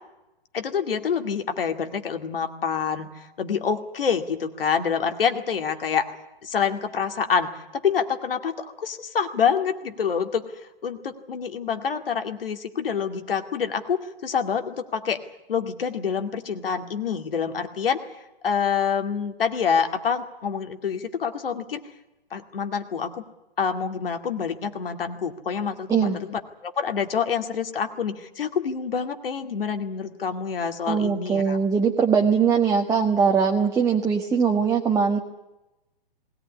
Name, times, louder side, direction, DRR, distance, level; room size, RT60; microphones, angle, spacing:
voice 1, 0.5-6.1 6.4-10.4 10.8-15.2 15.5-18.0 18.4-21.8 22.3-23.2 23.6-31.6, left 6 dB, 70° left, 6 dB, 2.3 m, -27 dB
voice 2, 25.9-26.2 30.9-35.2, right 6 dB, 10° right, 2 dB, 1.5 m, -21 dB
20.5 x 18.0 x 9.8 m, 0.97 s
hypercardioid pair, 125°, 29 cm